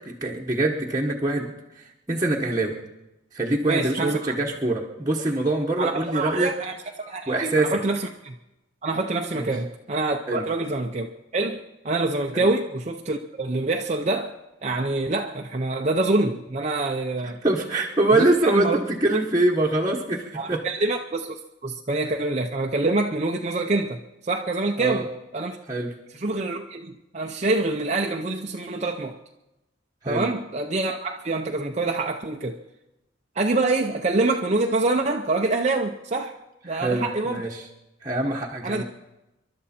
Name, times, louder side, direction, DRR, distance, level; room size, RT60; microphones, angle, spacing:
voice 1, 0.1-1.5 2.1-2.8 3.3-6.5 7.3-7.8 9.3-9.5 10.3-10.5 12.3-12.4 17.2-20.6 24.8-25.1 25.7-25.9 30.0-30.3 36.7-37.6 38.0-38.8, right 2 dB, 15° right, -3 dB, 1.2 m, -24 dB
voice 2, 3.7-4.3 5.8-8.3 8.8-11.1 11.3-11.6 11.8-14.3 14.6-17.4 18.1-18.8 20.3-21.4 21.6-25.1 25.3-25.6 26.1-29.2 30.1-32.6 33.4-36.3 36.6-37.4 38.2-38.3 38.6-38.8, right 2 dB, 35° right, 3 dB, 0.6 m, -26 dB
27.5 x 12.0 x 4.3 m, 0.97 s
head